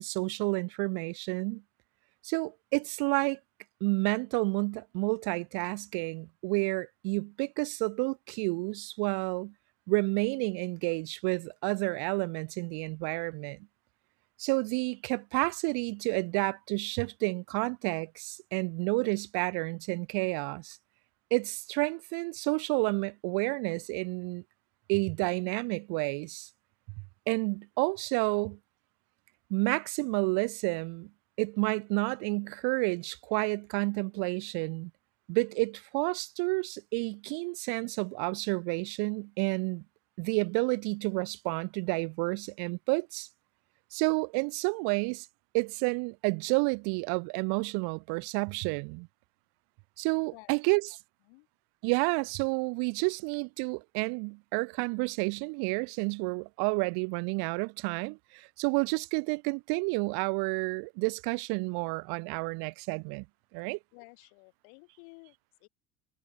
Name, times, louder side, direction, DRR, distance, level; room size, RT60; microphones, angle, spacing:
voice 1, 0.0-1.6 2.2-3.4 3.8-9.5 9.9-13.6 14.4-20.8 21.3-24.4 24.9-26.5 27.3-28.6 29.5-31.1 31.4-34.9 35.3-39.8 40.2-43.3 43.9-45.3 45.5-49.1 50.0-50.8 51.8-63.2 63.5-63.8, right 33 dB, 65° right, 0.9 m, -30 dB
voice 2, 50.3-51.5 63.9-65.7, left 40 dB or more, 75° left, 2.9 m, -55 dB
cardioid pair, 140°, 40 cm